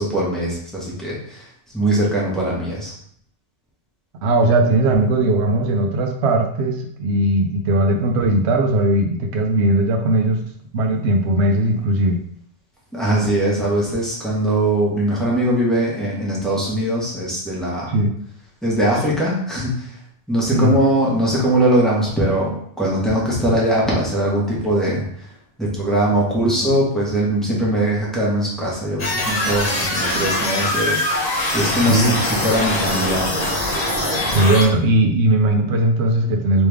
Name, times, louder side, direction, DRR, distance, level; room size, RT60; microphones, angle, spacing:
voice 1, 0.0-1.5 1.7-2.9 12.9-18.0 18.6-20.0 20.3-25.3 25.6-31.3 31.5-33.5, right 1 dB, ahead, -6 dB, 1.1 m, -21 dB
voice 2, 4.2-10.4 10.7-12.2 17.9-18.1 20.5-20.7 31.9-32.2 34.2-36.7, right 1 dB, 75° right, 3 dB, 0.9 m, -18 dB
sound 1, 29.0-34.7, left 1 dB, 40° left, 0.9 m, -22 dB
3.3 x 3.1 x 3.4 m, 0.65 s
omnidirectional pair, 1.1 m